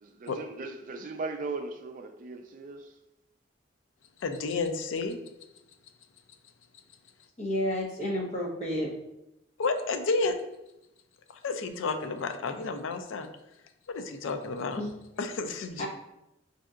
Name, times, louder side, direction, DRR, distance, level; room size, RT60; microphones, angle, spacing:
voice 1, 0.0-2.9, right 3 dB, 40° right, 0.4 m, -38 dB
voice 2, 4.2-5.2 9.6-10.4 11.3-13.3 13.9-14.8 15.2-15.9, left 3 dB, 80° left, 0.4 m, -31 dB
voice 3, 7.4-8.9 14.8-14.9 15.8-15.9, left 1 dB, 35° left, 0.8 m, -30 dB
5.3 x 2.6 x 2.4 m
head